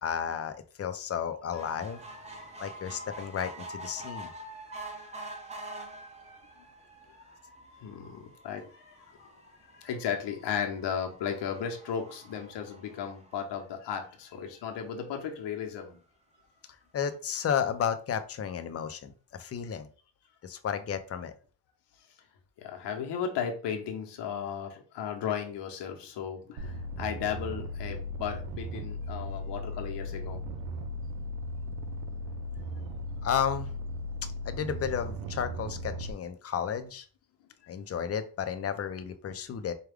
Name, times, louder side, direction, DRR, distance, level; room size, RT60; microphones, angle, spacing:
voice 1, 0.0-2.0 2.6-4.3 16.9-19.9 20.4-21.3 33.2-33.7 34.5-37.1 37.7-39.7, left 8 dB, 35° left, 9 dB, 0.5 m, -32 dB
sound 1, 1.5-14.1 14.7-14.8 15.1-15.2 15.4-15.5, right 1 dB, 15° right, 0.8 m, -46 dB
voice 2, 7.8-9.3 9.8-16.0 22.6-30.4, left 7 dB, 80° left, 3 dB, 1.0 m, -35 dB
sound 2, 26.6-36.1, equal, 85° right, 0.6 m, -37 dB
4.7 x 2.3 x 3.4 m, 0.39 s
cardioid pair, 110°, 41 cm